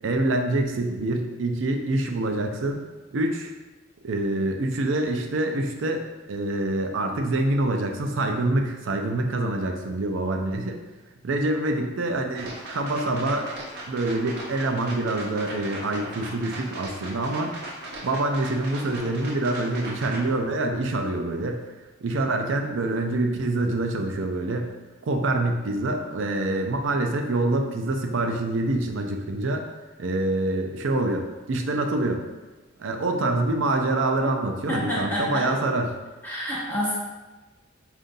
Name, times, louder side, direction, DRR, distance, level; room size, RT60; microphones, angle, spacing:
voice 1, 0.0-2.8 3.1-3.5 4.0-10.8 11.2-13.5 13.9-17.6 18.0-21.6 22.0-24.7 25.0-29.6 30.0-32.2 32.8-35.9, right 2 dB, 75° right, 4 dB, 0.5 m, -26 dB
sound 1, 12.4-20.2, right 2 dB, 55° right, 0.8 m, -38 dB
voice 2, 34.7-35.4 36.2-37.0, equal, 10° left, -9 dB, 1.0 m, -28 dB
5.2 x 2.5 x 2.6 m, 1.2 s
head